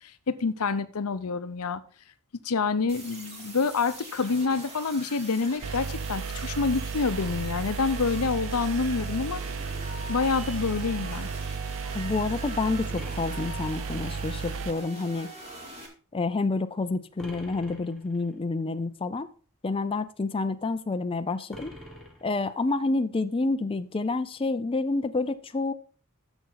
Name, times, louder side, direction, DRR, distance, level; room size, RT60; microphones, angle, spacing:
voice 1, 0.0-1.8 2.4-9.4 10.1-11.3, left 4 dB, 85° left, 12 dB, 0.7 m, -27 dB
sound 1, 2.9-15.9, right 1 dB, 30° right, 2.5 m, -43 dB
sound 2, 5.6-14.7, right 5 dB, 65° right, 0.5 m, -34 dB
voice 2, 11.9-15.3 16.1-19.3 19.6-21.7 22.2-25.7, left 3 dB, 25° left, 9 dB, 0.5 m, -28 dB
sound 3, 13.0-14.3 17.2-18.3 21.5-22.8, left 1 dB, ahead, 1.8 m, -47 dB
10.5 x 7.0 x 3.9 m, 0.40 s
head